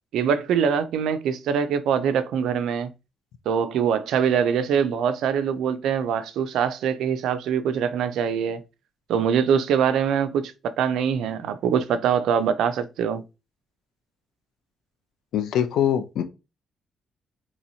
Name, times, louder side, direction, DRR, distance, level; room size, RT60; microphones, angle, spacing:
voice 1, 0.1-2.9 3.5-8.6 9.1-13.2, right 7 dB, 80° right, 0.4 m, -23 dB
voice 2, 15.3-16.2, left 10 dB, 80° left, 0.5 m, -23 dB
3.0 x 2.8 x 2.7 m
cardioid pair, 90°, 0 cm